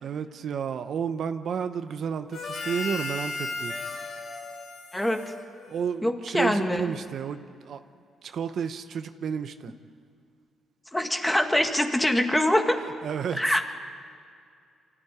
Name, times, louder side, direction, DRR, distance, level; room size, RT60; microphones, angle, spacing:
voice 1, 0.0-3.7 5.7-7.8 8.2-9.7 13.0-13.7, right 7 dB, 60° right, 9 dB, 0.9 m, -31 dB
Harmonica, 2.3-6.1, left 3 dB, 65° left, 3.1 m, -36 dB
voice 2, 4.9-5.2 6.0-6.9 10.9-12.8 13.3-13.6, left 1 dB, 10° left, 5 dB, 1.9 m, -24 dB
24.5 x 14.0 x 9.9 m, 2.3 s
cardioid pair, 90°, 0 cm